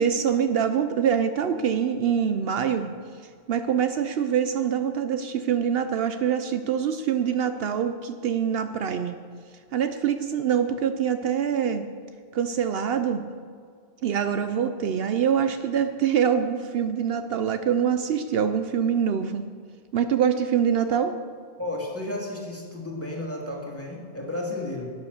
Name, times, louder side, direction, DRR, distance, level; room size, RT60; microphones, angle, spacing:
voice 1, 0.0-2.9 3.5-9.2 9.7-11.8 12.3-13.2 14.0-19.4 19.9-21.1, right 8 dB, 70° right, 9 dB, 0.8 m, -24 dB
voice 2, 21.6-24.9, left 1 dB, 15° left, -2 dB, 2.3 m, -33 dB
11.5 x 9.3 x 6.4 m, 2.1 s
omnidirectional pair, 1.1 m